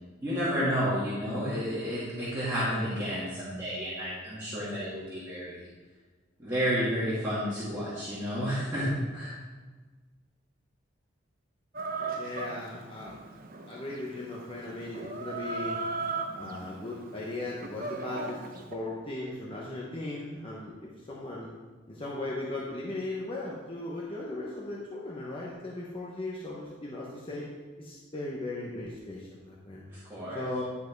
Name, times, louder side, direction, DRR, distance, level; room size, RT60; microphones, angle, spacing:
voice 1, 0.2-5.7 6.4-9.3 30.0-30.4, equal, 10° right, -13 dB, 2.4 m, -31 dB
Chicken rooster, 11.7-18.7, right 4 dB, 50° right, 0.8 m, -38 dB
voice 2, 12.2-13.2 13.7-15.8 16.4-18.4 18.7-21.5 21.9-27.5 27.8-29.9 30.3-30.6, left 2 dB, 30° left, -4 dB, 1.1 m, -37 dB
11.0 x 5.2 x 4.7 m, 1.4 s
head